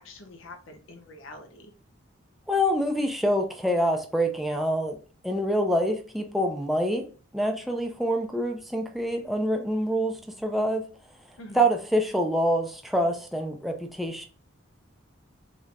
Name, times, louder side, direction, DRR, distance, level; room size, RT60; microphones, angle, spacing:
voice 1, 0.0-1.7 11.4-11.7, left 2 dB, 75° left, 0.7 m, -45 dB
voice 2, 2.5-5.0 5.2-7.1 7.3-10.9 11.5-14.3, equal, ahead, 0.4 m, -26 dB
3.2 x 3.2 x 2.5 m
head